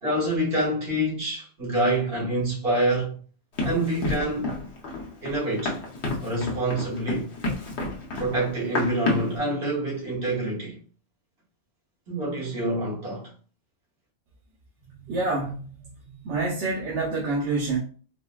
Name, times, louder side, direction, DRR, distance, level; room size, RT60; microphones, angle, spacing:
voice 1, 0.0-3.2 3.6-4.5 5.2-5.8 6.2-7.3 8.2-10.8 12.1-13.3, right 1 dB, 50° right, 1.5 m, -26 dB
Run, 3.6-9.4, left 2 dB, 65° left, 1.0 m, -30 dB
voice 2, 14.9-15.9 16.2-17.8, right 3 dB, 70° right, 1.0 m, -27 dB
4.0 x 2.1 x 2.2 m
omnidirectional pair, 1.3 m